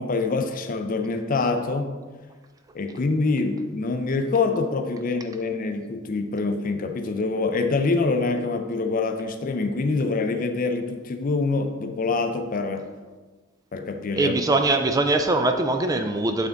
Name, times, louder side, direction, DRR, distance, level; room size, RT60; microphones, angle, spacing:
voice 1, 0.0-2.0 2.7-12.9 13.7-14.6, left 3 dB, 40° left, 7 dB, 0.5 m, -25 dB
voice 2, 14.2-16.5, right 2 dB, 15° right, 6 dB, 0.3 m, -22 dB
8.5 x 3.5 x 3.8 m, 1.4 s
head